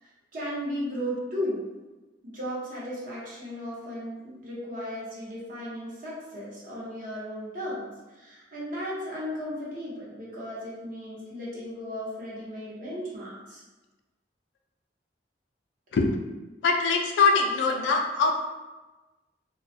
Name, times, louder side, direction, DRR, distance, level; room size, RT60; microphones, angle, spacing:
voice 1, 0.0-1.6 2.2-7.9 8.2-13.6, equal, 50° right, -7 dB, 0.8 m, -35 dB
voice 2, 16.6-18.4, left 4 dB, 85° left, 3 dB, 0.3 m, -23 dB
2.3 x 2.1 x 2.6 m, 1.1 s
head